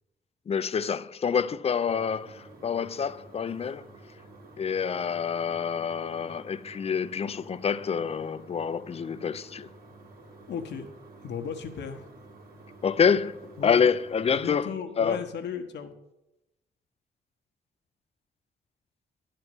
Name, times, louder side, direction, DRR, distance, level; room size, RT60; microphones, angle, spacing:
voice 1, 0.5-3.9 4.6-9.7 12.8-14.7 15.0-15.2, left 6 dB, 35° left, 0.4 m, -27 dB
sound 1, 1.9-14.5, right 2 dB, 60° right, 2.3 m, -50 dB
voice 2, 10.5-10.9 11.2-12.1 13.6-13.8 14.3-15.9, left 7 dB, 85° left, 1.2 m, -35 dB
11.0 x 4.4 x 7.9 m
cardioid pair, 105°, 18 cm